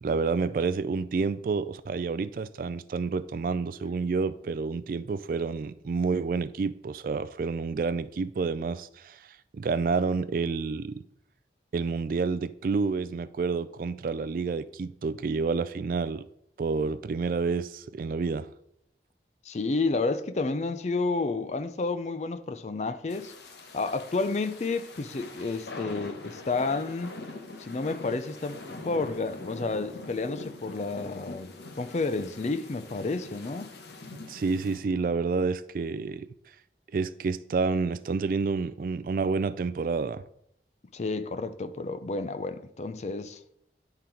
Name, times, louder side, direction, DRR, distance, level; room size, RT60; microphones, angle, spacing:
voice 1, 0.0-9.2 9.5-11.0 11.7-16.3 16.6-18.5 34.3-36.3 36.9-40.2, right 4 dB, 50° right, 0.3 m, -29 dB
voice 2, 19.5-23.3 23.7-27.2 27.6-28.6 28.8-33.7 40.9-43.4, left 3 dB, 40° left, 0.4 m, -30 dB
sound 1, 23.1-34.8, left 3 dB, 70° left, 0.9 m, -43 dB
9.9 x 3.9 x 4.4 m
head